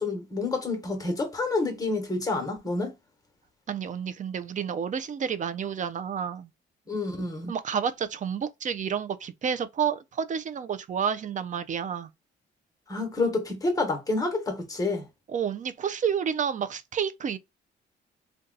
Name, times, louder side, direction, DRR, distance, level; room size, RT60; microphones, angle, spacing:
voice 1, 0.0-2.9 6.9-7.5 12.9-15.1, left 3 dB, 15° left, 1.1 m, -28 dB
voice 2, 3.7-6.5 7.5-12.1 15.3-17.4, right 7 dB, 40° right, 0.4 m, -30 dB
2.6 x 2.2 x 3.8 m
cardioid pair, 90°, 20 cm